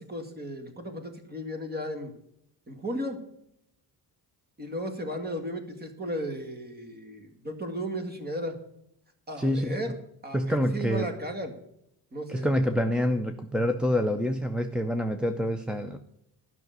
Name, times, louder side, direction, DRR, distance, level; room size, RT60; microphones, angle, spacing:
voice 1, 0.0-2.1 2.7-3.2 4.6-8.6 9.3-10.0 10.2-11.6 12.1-12.5, equal, 25° right, 6 dB, 1.8 m, -35 dB
voice 2, 9.4-9.8 10.3-11.1 12.3-16.0, equal, ahead, 3 dB, 0.4 m, -26 dB
12.0 x 6.0 x 7.8 m, 0.76 s
cardioid pair, 160°, 42 cm